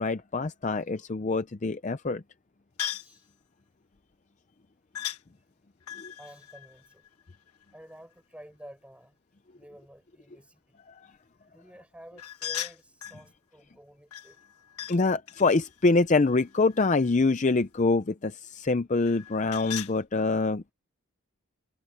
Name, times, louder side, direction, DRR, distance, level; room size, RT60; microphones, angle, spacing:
voice 1, 0.0-2.2 6.0-6.1 14.9-20.7, left 3 dB, 30° left, 0.5 m, -25 dB
sound 1, 2.8-3.2 4.9-5.2 5.8-7.6 12.2-13.2 14.1-15.0 15.3-17.2 19.0-20.0, left 11 dB, 85° left, 1.4 m, -38 dB
voice 2, 3.0-3.3 6.2-7.0 7.7-9.2 9.5-10.8 11.5-14.4, equal, 5° right, 6.4 m, -51 dB
head